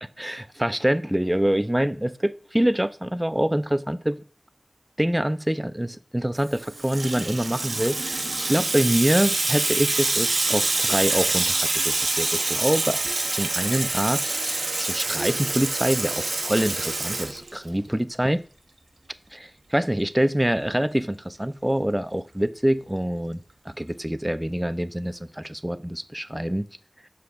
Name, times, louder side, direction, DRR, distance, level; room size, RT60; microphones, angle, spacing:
voice 1, 0.2-4.2 5.0-13.0 13.3-18.4 19.3-26.7, right 1 dB, 15° right, 0.4 m, -25 dB
Water tap faucet / Sink (filling or washing), 6.5-17.9, right 2 dB, 85° right, 0.6 m, -26 dB
6.2 x 4.9 x 3.4 m
wide cardioid pair, 45°, 0 cm